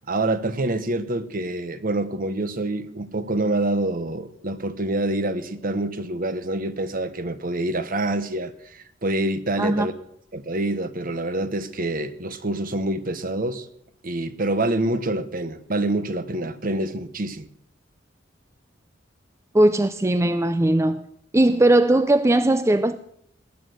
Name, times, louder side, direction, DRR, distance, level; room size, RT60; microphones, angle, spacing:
voice 1, 0.1-9.9 10.3-13.7 14.0-17.5, right 2 dB, 50° right, 1.2 m, -26 dB
voice 2, 9.6-9.9 19.5-21.0 21.3-23.0, right 1 dB, 15° right, 0.5 m, -19 dB
19.5 x 9.2 x 7.9 m
head